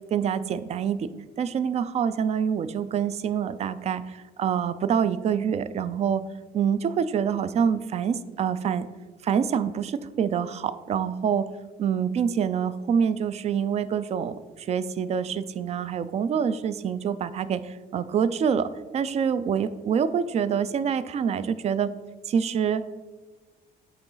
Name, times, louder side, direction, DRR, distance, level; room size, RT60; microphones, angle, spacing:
voice 1, 0.1-1.1 1.4-6.2 6.5-8.9 9.2-11.5 11.8-21.9 22.3-22.8, right 7 dB, 40° right, 14 dB, 0.4 m, -26 dB
8.7 x 4.0 x 3.8 m, 1.3 s
cardioid pair, 110°, 17 cm